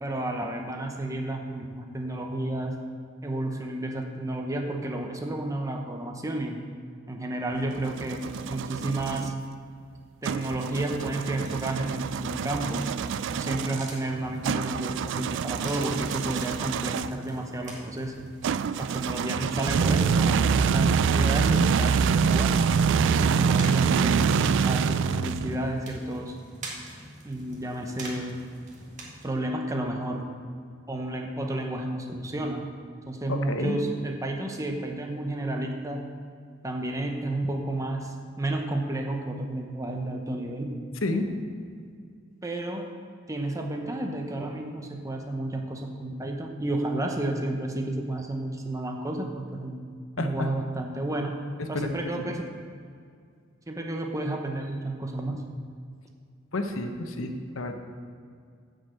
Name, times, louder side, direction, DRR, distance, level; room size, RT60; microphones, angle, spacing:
voice 1, 0.0-2.8 3.2-6.6 7.1-9.3 10.2-12.9 13.3-18.3 18.8-22.6 23.1-26.4 27.2-28.4 29.2-30.2 30.9-32.7 33.1-36.1 36.6-40.7 42.4-42.9 43.3-49.7 50.2-51.4 51.7-52.5 53.7-55.4, right 1 dB, 15° right, 2 dB, 0.8 m, -31 dB
sound 1, 7.5-9.3 10.2-17.2 18.4-25.7, right 6 dB, 65° right, 0.3 m, -25 dB
sound 2, 10.4-29.2, right 2 dB, 40° right, 1.9 m, -47 dB
voice 2, 33.3-33.8 41.0-41.3 50.2-50.5 51.6-52.3 56.5-57.7, left 2 dB, 90° left, 6 dB, 0.9 m, -30 dB
10.0 x 5.2 x 7.6 m, 2.2 s
head